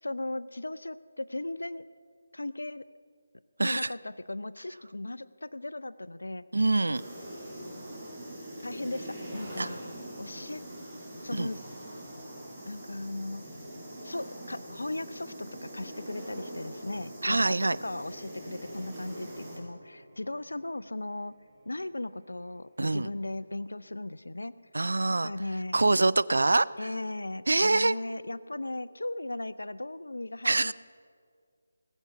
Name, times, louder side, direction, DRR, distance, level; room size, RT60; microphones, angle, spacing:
voice 1, 0.0-1.8 2.3-2.8 3.6-6.4 8.6-9.8 10.2-10.6 11.2-11.6 12.7-13.4 14.0-21.3 21.7-24.5 25.2-25.8 26.8-30.7, left 2 dB, 80° left, 17 dB, 0.4 m, -37 dB
voice 2, 3.6-3.9 6.5-7.0 9.6-9.7 11.3-11.5 17.2-17.8 22.8-23.1 24.7-25.3 25.7-26.9 27.5-28.0 30.4-30.7, right 2 dB, 70° right, 19 dB, 0.4 m, -25 dB
sound 1, 6.9-19.6, right 1 dB, 5° right, 5.1 m, -43 dB
sound 2, 11.3-24.6, right 1 dB, 20° right, 5.1 m, -60 dB
20.0 x 8.2 x 6.9 m, 2.1 s
figure-of-eight pair, 155°, 0 cm